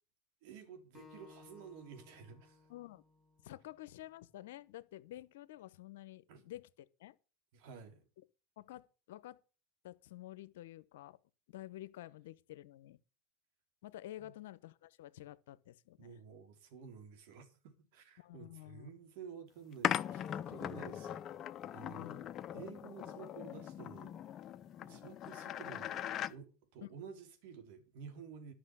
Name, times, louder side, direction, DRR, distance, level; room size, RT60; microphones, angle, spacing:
voice 1, 0.4-2.7 6.3-6.4 7.5-8.1 14.2-14.3 16.0-21.2 21.7-24.1 24.8-28.5, right 6 dB, 65° right, 3.3 m, -52 dB
Acoustic guitar, 0.9-4.2, left 5 dB, 15° left, 1.2 m, -61 dB
voice 2, 2.7-3.0 3.4-7.1 8.6-9.4 9.8-11.2 11.5-13.0 13.8-16.2 18.2-18.9 22.0-22.3 26.8-26.9, left 14 dB, 75° left, 0.8 m, -50 dB
sound 1, 19.8-26.3, left 10 dB, 40° left, 0.6 m, -40 dB
12.0 x 6.1 x 7.8 m
hypercardioid pair, 105°, 0 cm